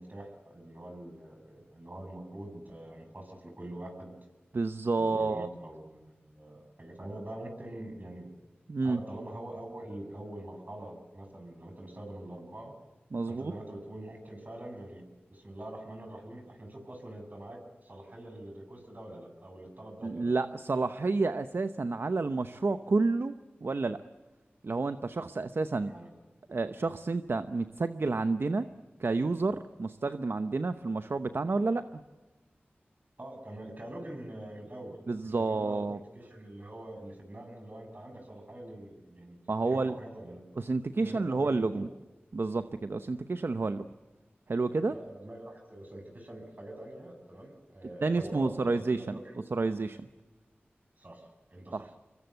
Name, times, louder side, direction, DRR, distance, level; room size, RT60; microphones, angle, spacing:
voice 1, 0.0-4.1 5.0-8.3 8.8-12.7 13.3-15.0 15.3-20.3 25.8-26.1 33.2-35.0 35.4-40.4 41.0-41.9 44.9-49.3 51.0-51.9, right 1 dB, 45° right, 4 dB, 7.6 m, -45 dB
voice 2, 4.5-5.5 8.7-9.0 13.1-13.5 20.0-23.3 23.6-24.0 24.6-25.9 26.5-28.7 29.0-32.0 35.1-36.0 39.5-40.0 40.6-41.9 42.3-43.9 44.5-44.9 48.0-49.2 49.5-50.0 51.7-51.9, right 3 dB, 65° right, 10 dB, 0.9 m, -30 dB
26.5 x 22.0 x 8.1 m, 1.2 s
wide cardioid pair, 50°, 4 cm